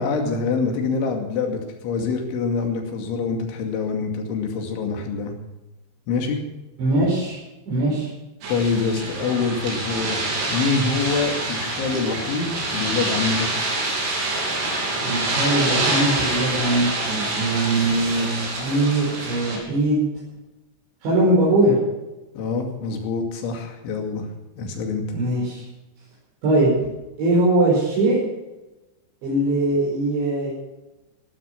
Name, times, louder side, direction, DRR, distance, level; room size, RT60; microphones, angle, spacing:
voice 1, 0.0-5.3 6.1-6.4 8.5-13.5 22.4-24.3 24.6-25.0, left 4 dB, 80° left, 3 dB, 4.8 m, -25 dB
voice 2, 6.8-7.4 7.7-8.1 15.0-20.0 21.0-21.8 25.1-25.6 26.4-26.7 27.2-28.2 29.2-30.5, right 2 dB, 70° right, -7 dB, 7.5 m, -21 dB
sound 1, 8.4-19.6, right 2 dB, 90° right, 6.3 m, -26 dB
17.0 x 12.0 x 6.0 m, 1.1 s
omnidirectional pair, 5.4 m